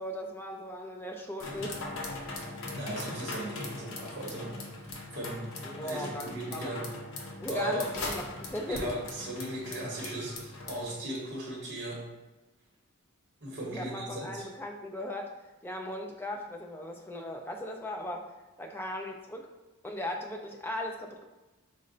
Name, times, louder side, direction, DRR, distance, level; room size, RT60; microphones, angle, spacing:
voice 1, 0.0-1.8 5.6-6.7 7.4-9.0 13.7-15.3 15.6-18.3 18.6-19.5 19.8-21.3, left 1 dB, 10° left, 2 dB, 0.4 m, -38 dB
sound 1, 1.4-10.9, left 2 dB, 60° left, 0.7 m, -40 dB
voice 2, 2.7-4.5 4.9-6.8 7.5-7.9 8.7-12.0 13.4-14.5, right 1 dB, 50° right, -4 dB, 0.9 m, -37 dB
5.1 x 2.1 x 3.8 m, 1.1 s
head